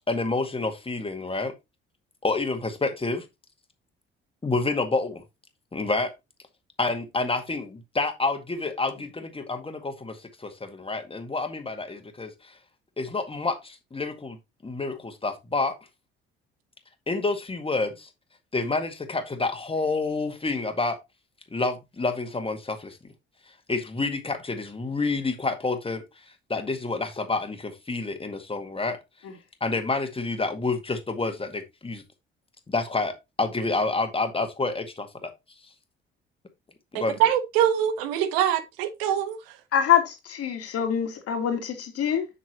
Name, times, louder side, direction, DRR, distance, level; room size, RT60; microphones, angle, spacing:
voice 1, 0.1-1.5 2.2-3.3 4.4-5.2 5.7-6.1 6.8-12.6 13.0-14.4 14.6-15.7 17.1-18.1 18.5-21.0 21.5-23.0 23.7-26.0 26.5-29.0 29.6-32.0 32.7-35.3 36.9-37.2, left 3 dB, 20° left, 1.9 m, -28 dB
voice 2, 36.9-39.4, right 10 dB, 70° right, 0.9 m, -24 dB
voice 3, 39.7-42.3, left 9 dB, 50° left, 2.2 m, -24 dB
7.6 x 6.0 x 2.9 m
figure-of-eight pair, 50°, 30 cm